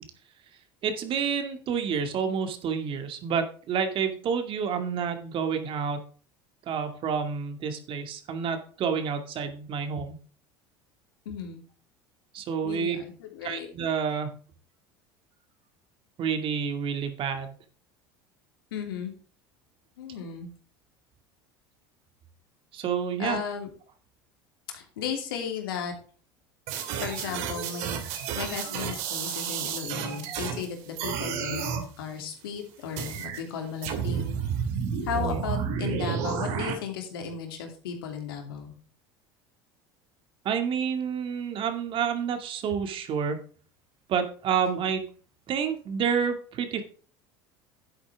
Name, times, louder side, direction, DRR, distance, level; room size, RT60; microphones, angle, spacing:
voice 1, 0.8-6.0 6.7-10.2 12.3-13.0 13.4-14.3 16.2-17.5 22.7-23.4 35.2-35.4 40.4-43.4 44.1-45.0 45.5-46.8, right 7 dB, 50° right, 7 dB, 2.3 m, -29 dB
voice 2, 11.2-11.6 12.6-13.7 18.7-19.1 20.0-20.5 23.2-23.7 24.7-25.9 27.0-34.4 35.0-38.7, left 7 dB, 85° left, 4 dB, 2.8 m, -35 dB
sound 1, 26.7-30.6 31.0-31.8 33.0-33.4 33.8-36.7, right 7 dB, 65° right, 2.4 m, -31 dB
11.0 x 8.6 x 3.5 m, 0.41 s
supercardioid pair, 95°, 12 cm